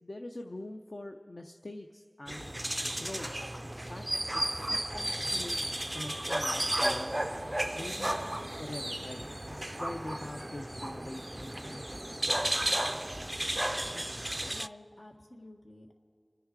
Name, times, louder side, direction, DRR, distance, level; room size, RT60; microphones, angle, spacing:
voice 1, 0.0-2.5 3.0-3.3 3.9-4.1 4.5-5.6 5.9-7.2 7.8-8.2 8.6-12.3, left 1 dB, 60° left, 4 dB, 0.6 m, -44 dB
sound 1, 2.3-14.7, right 1 dB, 25° right, 0.3 m, -33 dB
voice 2, 14.4-15.9, left 1 dB, 75° left, 1 dB, 1.7 m, -51 dB
29.0 x 10.0 x 4.8 m, 2.2 s
wide cardioid pair, 50°, 0 cm